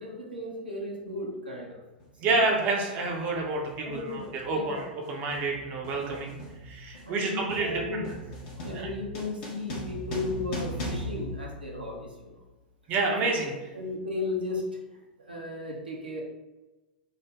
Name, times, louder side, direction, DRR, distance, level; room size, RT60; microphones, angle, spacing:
voice 1, 0.0-1.8 2.3-2.4 3.8-4.3 4.5-4.8 6.0-6.2 7.1-8.0 8.5-12.4 13.7-14.8 15.2-16.2, left 2 dB, 85° right, -3 dB, 0.7 m, -35 dB
sound 1, 2.0-2.2 3.1-3.4 3.6-12.2, equal, 45° left, 1.0 m, -39 dB
voice 2, 2.2-6.3 6.6-8.0 8.7-8.9 12.9-13.5, right 3 dB, 35° right, 0 dB, 0.6 m, -29 dB
3.4 x 2.1 x 3.4 m, 1.1 s
figure-of-eight pair, 95°, 5 cm